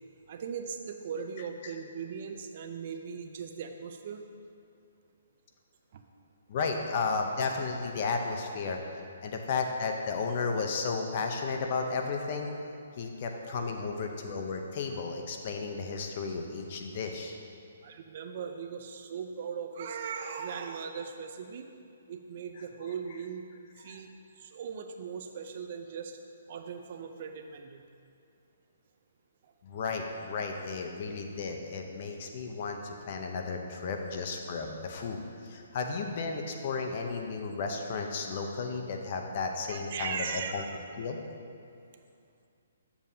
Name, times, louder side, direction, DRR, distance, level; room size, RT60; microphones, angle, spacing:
voice 1, 0.3-4.2 5.9-6.0 13.0-13.6 17.8-21.7 22.1-23.4 23.8-24.1 24.4-26.2 26.5-27.8 34.1-34.3 39.7-40.8, right 6 dB, 45° right, 6 dB, 0.5 m, -39 dB
voice 2, 6.5-8.8 9.2-12.5 13.0-17.4 22.6-22.7 23.8-24.0 29.6-40.3 40.5-40.6 41.0-41.2, left 4 dB, 40° left, 3 dB, 0.7 m, -33 dB
8.9 x 7.0 x 2.8 m, 2.5 s
hypercardioid pair, 160°, 0 cm